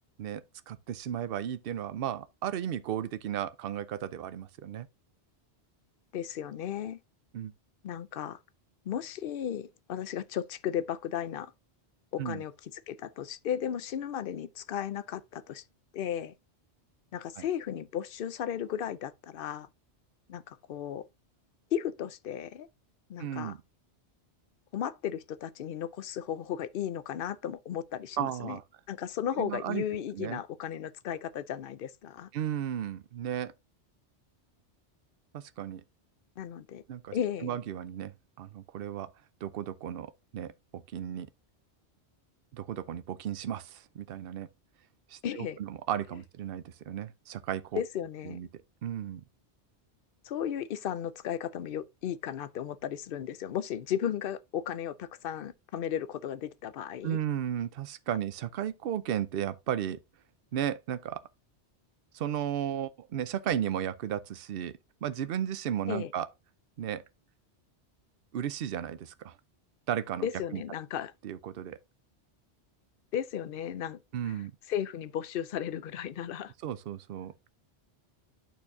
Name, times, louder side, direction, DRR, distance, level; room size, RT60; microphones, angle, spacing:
voice 1, 0.2-4.9 7.3-7.5 12.2-12.4 17.4-17.5 23.2-23.6 28.2-28.6 29.4-29.8 30.1-30.4 32.3-33.5 35.3-35.8 36.9-37.2 37.4-39.1 39.4-41.3 42.5-44.5 45.1-47.8 48.2-48.5 48.8-49.2 57.0-60.0 60.5-61.2 62.1-64.7 65.0-66.3 66.8-67.0 68.3-69.4 69.9-70.3 70.5-70.6 71.2-71.8 74.1-74.5 76.6-77.3, right 10 dB, 60° right, 0.8 m, -34 dB
voice 2, 6.1-7.0 7.8-8.4 8.9-11.5 12.1-15.6 15.9-16.3 17.1-19.7 20.3-21.1 21.7-22.7 23.1-23.5 24.7-28.6 28.9-32.3 36.4-36.8 37.1-37.6 45.2-45.6 47.7-48.4 50.2-57.2 65.9-66.1 70.2-71.1 73.1-74.0 74.7-76.5, left 9 dB, 60° left, 0.7 m, -35 dB
12.0 x 4.4 x 2.7 m
omnidirectional pair, 1.2 m